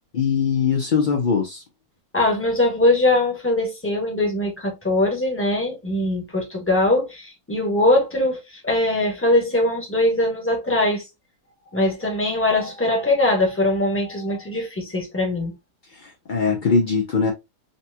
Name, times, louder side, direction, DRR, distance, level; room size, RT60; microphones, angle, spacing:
voice 1, 0.1-1.6 16.0-17.3, left 5 dB, 75° left, 0.4 m, -21 dB
voice 2, 2.1-11.0 11.7-15.5, left 1 dB, 10° left, 0.9 m, -21 dB
4.0 x 2.8 x 2.2 m
omnidirectional pair, 1.8 m